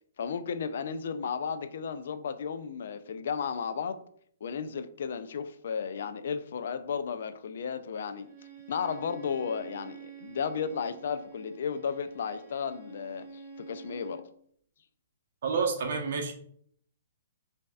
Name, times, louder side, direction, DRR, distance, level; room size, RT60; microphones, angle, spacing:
voice 1, 0.2-4.0 4.4-8.3 8.7-14.2, left 6 dB, 65° left, 0.4 m, -34 dB
Bowed string instrument, 8.2-14.3, right 5 dB, 20° right, 1.1 m, -48 dB
voice 2, 15.4-16.3, right 5 dB, 60° right, 0.9 m, -29 dB
5.3 x 2.7 x 2.3 m
hypercardioid pair, 160°, 0 cm